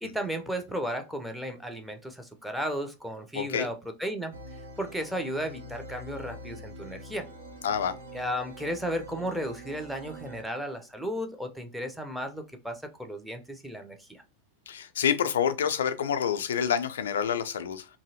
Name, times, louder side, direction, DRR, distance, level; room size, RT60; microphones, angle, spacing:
voice 1, 0.0-4.3 4.8-7.3 8.1-14.2, equal, ahead, 0.5 m, -34 dB
voice 2, 3.3-3.7 7.6-7.9 14.7-17.9, left 8 dB, 60° left, 0.3 m, -27 dB
sound 1, 4.3-10.4, right 1 dB, 65° right, 0.5 m, -45 dB
2.7 x 2.7 x 2.7 m
figure-of-eight pair, 90°, 0 cm